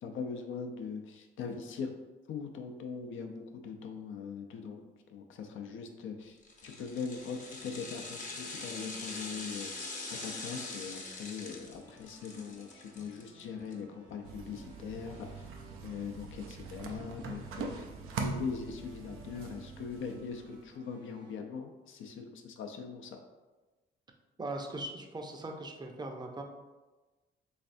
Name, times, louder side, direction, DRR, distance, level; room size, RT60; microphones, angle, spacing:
voice 1, 0.0-1.9 2.3-4.8 5.1-6.4 6.6-9.9 10.2-15.5 15.8-17.9 18.2-23.2, left 5 dB, 75° left, 4 dB, 0.5 m, -41 dB
sound 1, 6.4-13.7 14.1-14.2, left 3 dB, 40° left, 0.7 m, -43 dB
sound 2, 7.4-21.4, right 1 dB, 65° right, 1.0 m, -59 dB
sound 3, 14.2-20.7, right 4 dB, 90° right, 0.4 m, -42 dB
voice 2, 24.4-26.4, right 2 dB, 20° right, 3 dB, 0.5 m, -40 dB
3.3 x 3.3 x 2.6 m, 1.2 s
cardioid pair, 80°, 21 cm